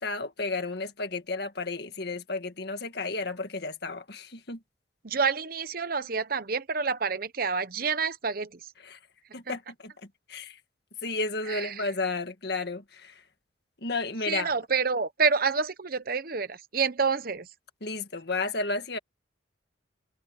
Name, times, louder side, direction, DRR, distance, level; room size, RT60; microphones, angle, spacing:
voice 1, 0.0-4.6 8.8-9.0 9.3-9.9 10.3-10.6 11.0-13.2 13.8-14.5 17.8-19.0, left 3 dB, 60° left, 1.9 m, -32 dB
voice 2, 5.0-8.7 11.5-11.9 14.3-17.5, right 5 dB, 50° right, 1.0 m, -28 dB
head